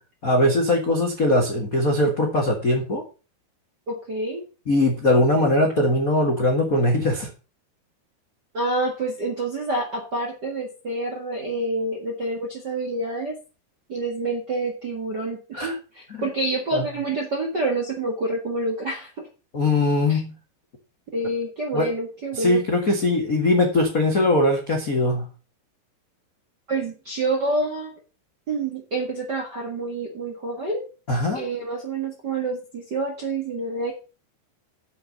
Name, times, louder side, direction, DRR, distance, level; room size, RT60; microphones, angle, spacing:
voice 1, 0.2-3.0 4.7-7.3 15.5-15.8 16.1-16.2 16.7-16.8 19.5-20.3 21.7-21.9 22.4-25.3 31.1-31.4, left 1 dB, 75° left, 2 dB, 0.7 m, -21 dB
voice 2, 3.9-4.4 8.5-13.4 13.9-19.3 20.1-20.2 21.1-22.6 26.7-28.0 28.5-30.8 31.3-33.9, right 2 dB, 50° right, 0 dB, 1.2 m, -27 dB
7.2 x 6.9 x 7.2 m, 0.34 s
omnidirectional pair, 4.8 m